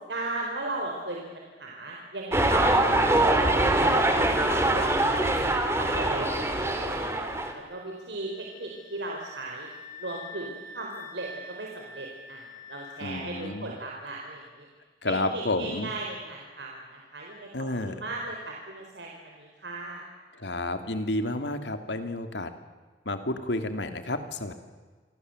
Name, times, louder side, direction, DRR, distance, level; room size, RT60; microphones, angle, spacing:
voice 1, 0.0-7.1 7.5-9.7 10.0-14.7 15.0-17.5 17.8-20.0, right 2 dB, 80° right, -1 dB, 4.6 m, -37 dB
sound 1, 2.3-7.5, right 1 dB, 15° right, 3.0 m, -23 dB
sound 2, 7.1-13.9, left 1 dB, 55° right, 5.8 m, -47 dB
voice 2, 13.0-13.8 15.0-15.9 17.5-18.0 20.4-22.5 23.0-24.5, left 2 dB, 85° left, 8 dB, 2.8 m, -30 dB
29.5 x 24.0 x 8.0 m, 1.4 s
head